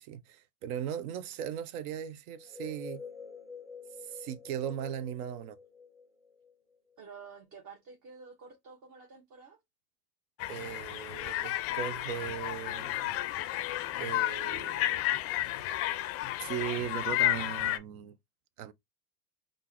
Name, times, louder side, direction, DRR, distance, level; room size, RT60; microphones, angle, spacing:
voice 1, 0.0-3.0 4.0-5.6 10.5-13.1 14.0-15.1 16.4-18.2 18.6-18.7, right 10 dB, 60° right, 0.6 m, -38 dB
sound 1, 2.3-6.9, left 5 dB, 5° right, 0.7 m, -47 dB
voice 2, 7.0-9.6, right 5 dB, 40° right, 1.2 m, -50 dB
sound 2, 10.4-17.8, left 15 dB, 30° left, 0.4 m, -32 dB
3.5 x 2.5 x 2.9 m
hypercardioid pair, 95°, 48 cm